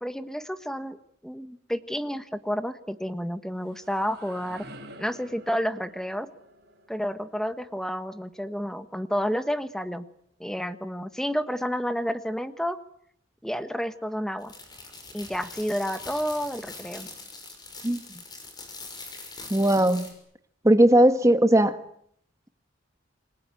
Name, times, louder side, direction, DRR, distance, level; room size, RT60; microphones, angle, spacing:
voice 1, 0.0-1.0 1.2-4.7 5.0-6.3 6.9-10.1 10.4-12.8 13.4-14.5 15.1-17.1, equal, 5° left, 1.3 m, -30 dB
sound 1, 3.3-9.1, right 1 dB, 55° right, 7.0 m, -50 dB
sound 2, 14.4-20.1, left 3 dB, 20° left, 6.2 m, -43 dB
voice 2, 19.5-20.1 20.6-21.8, right 1 dB, 15° right, 1.4 m, -18 dB
28.0 x 21.5 x 9.1 m
head